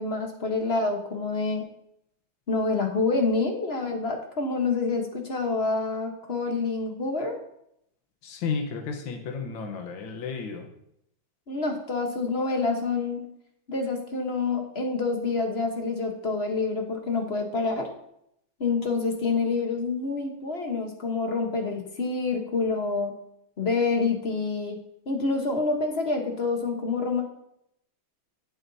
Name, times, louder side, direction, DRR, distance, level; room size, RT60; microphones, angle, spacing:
voice 1, 0.0-1.6 2.5-7.4 11.5-13.3 13.7-17.9 18.6-23.1 23.6-24.8 25.1-27.2, left 3 dB, 35° left, 3 dB, 1.2 m, -27 dB
voice 2, 8.2-10.7, left 5 dB, 75° left, 4 dB, 1.9 m, -32 dB
15.0 x 7.9 x 2.8 m, 0.76 s
omnidirectional pair, 2.2 m